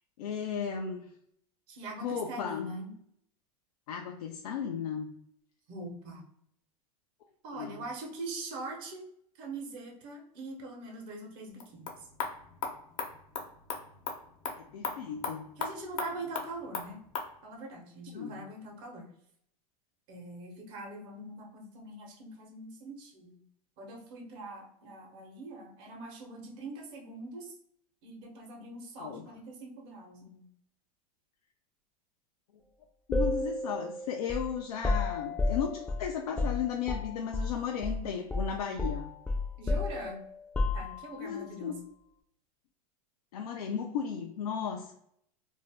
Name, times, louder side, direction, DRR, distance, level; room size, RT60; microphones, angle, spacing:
voice 1, 0.2-1.1 2.0-2.7 3.9-5.1 7.5-7.8 14.6-15.5 18.1-18.4 29.0-29.3 33.1-39.1 41.2-41.8 43.3-44.9, left 7 dB, 80° left, 3 dB, 0.4 m, -35 dB
voice 2, 1.7-2.9 5.7-6.2 7.4-9.0 9.4-11.9 15.6-17.0 17.4-19.1 20.1-23.4 23.8-27.5 28.0-30.5 39.6-40.2 40.7-41.8, right 2 dB, 55° right, 2 dB, 0.9 m, -43 dB
sound 1, 11.5-17.3, left 5 dB, 65° left, 0.8 m, -39 dB
sound 2, 33.1-37.6 37.8-38.0 38.3-41.3, left 2 dB, 5° left, 0.4 m, -32 dB
2.5 x 2.1 x 3.4 m, 0.69 s
hypercardioid pair, 110°, 19 cm